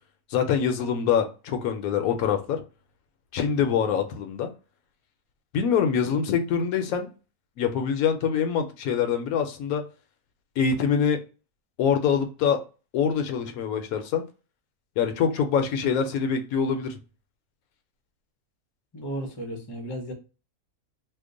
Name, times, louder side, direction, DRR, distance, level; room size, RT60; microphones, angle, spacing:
voice 1, 0.3-2.6 3.3-4.5 5.5-7.1 7.6-9.8 10.6-11.2 11.8-12.6 12.9-14.2 15.0-17.0, left 7 dB, 75° left, 1.0 m, -24 dB
voice 2, 18.9-20.1, right 1 dB, 30° left, 0.5 m, -34 dB
2.9 x 2.1 x 3.7 m
omnidirectional pair, 1.6 m